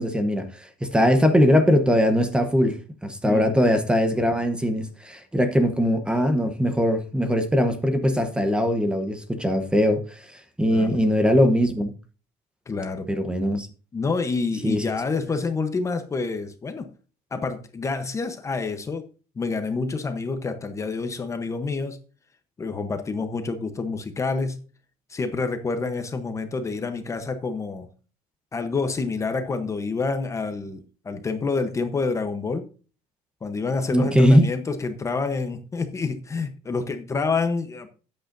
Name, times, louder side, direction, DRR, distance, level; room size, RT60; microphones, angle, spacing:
voice 1, 0.0-11.9 13.1-13.7 14.6-14.8 33.9-34.5, equal, 5° right, 0.9 m, -21 dB
voice 2, 10.6-11.0 12.7-13.1 13.9-16.9 17.3-19.1 19.4-22.0 22.6-24.6 25.1-27.9 28.5-32.7 33.4-37.9, left 4 dB, 20° left, 0.9 m, -28 dB
13.5 x 8.9 x 2.6 m
cardioid pair, 165°, 15 cm